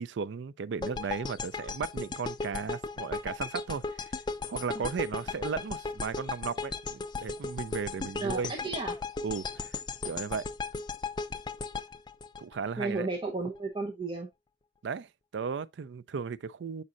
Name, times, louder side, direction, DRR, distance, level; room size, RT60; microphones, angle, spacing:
voice 1, 0.0-4.0 4.5-8.5 9.2-9.8 10.0-10.5 12.4-13.1 14.8-16.8, right 5 dB, 70° right, 0.4 m, -35 dB
sound 1, 0.8-13.0, left 4 dB, 25° left, 0.3 m, -36 dB
voice 2, 8.2-9.0 12.8-14.3, right 3 dB, 25° right, 0.8 m, -33 dB
7.3 x 5.3 x 2.5 m
head